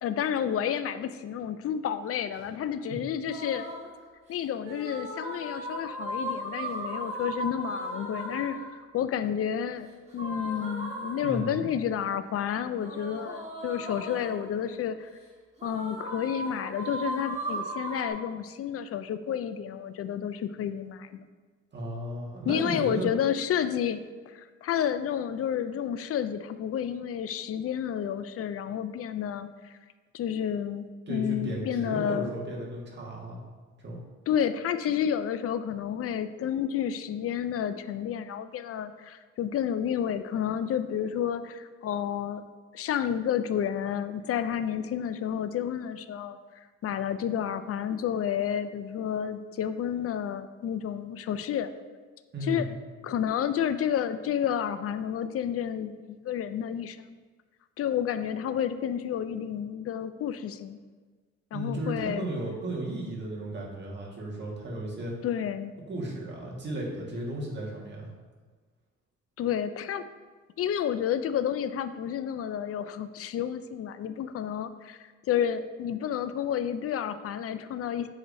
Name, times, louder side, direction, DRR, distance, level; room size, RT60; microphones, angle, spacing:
voice 1, 0.0-3.7 4.3-9.9 10.1-15.1 15.6-21.3 22.4-29.5 30.1-32.3 34.3-42.4 42.7-46.4 46.8-51.7 52.4-52.6 53.0-57.2 57.8-60.8 61.5-62.3 65.2-65.7 69.4-70.1 70.6-75.0 75.3-78.1, left 9 dB, 50° left, 12 dB, 0.4 m, -30 dB
sound 1, 3.3-3.9 4.6-8.8 10.1-11.7 12.8-14.5 15.6-18.1, right 1 dB, 20° right, 1.8 m, -36 dB
voice 2, 11.2-11.7 21.7-23.1 31.1-33.4 33.8-34.0 52.3-52.7 61.5-65.1 65.9-68.1, right 1 dB, 35° right, -3 dB, 1.7 m, -35 dB
7.4 x 4.9 x 2.7 m, 1.4 s
cardioid pair, 90°, 30 cm